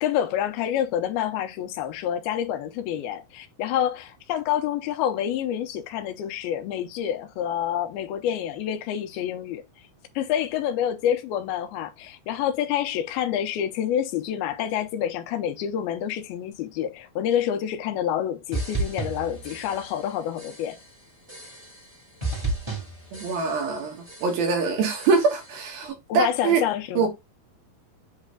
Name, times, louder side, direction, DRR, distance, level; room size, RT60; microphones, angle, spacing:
voice 1, 0.0-9.6 10.2-20.8 26.1-27.1, left 10 dB, 80° left, 2.5 m, -27 dB
sound 1, 18.5-20.1 20.4-20.9 21.3-21.9 22.2-23.8 24.1-24.6 25.0-25.6, right 2 dB, 10° right, 1.3 m, -33 dB
voice 2, 23.1-26.6 27.0-27.1, right 5 dB, 70° right, 3.2 m, -24 dB
8.1 x 3.3 x 3.7 m
omnidirectional pair, 4.5 m